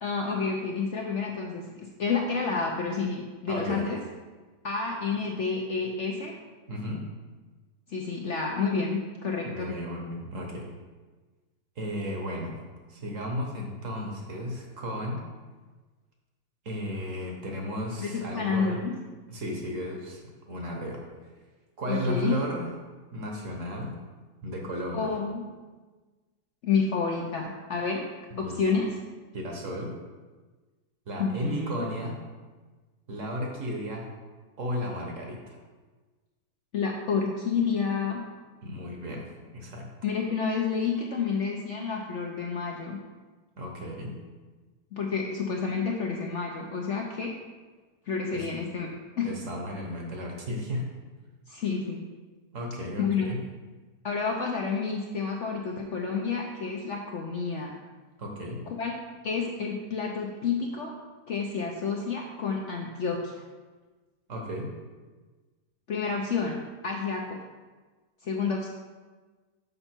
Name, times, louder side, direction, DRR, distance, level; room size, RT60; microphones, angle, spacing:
voice 1, 0.0-4.0 4.6-6.3 7.9-9.7 18.0-19.0 21.9-22.4 24.9-25.5 26.6-28.1 28.4-29.0 31.2-31.7 36.7-38.2 40.0-43.0 44.9-47.4 48.1-48.9 49.2-49.3 51.5-52.0 53.0-53.3 54.0-57.7 58.8-58.9 59.2-60.9 61.3-63.4 65.9-67.4 68.2-68.7, left 5 dB, 60° left, 0 dB, 0.8 m, -29 dB
voice 2, 3.5-3.9 6.7-7.0 9.4-10.7 11.8-12.6 12.9-15.2 16.6-18.8 19.3-20.2 20.5-21.0 21.8-22.7 23.1-23.9 24.4-25.1 28.3-28.6 29.3-29.9 31.1-32.2 33.1-34.1 34.6-35.4 38.6-39.2 39.5-39.9 43.6-44.1 48.3-48.5 49.2-50.9 52.5-53.4 58.2-58.6 64.3-64.7, equal, 50° right, 0 dB, 1.4 m, -34 dB
6.7 x 5.5 x 4.4 m, 1.3 s
omnidirectional pair, 1.8 m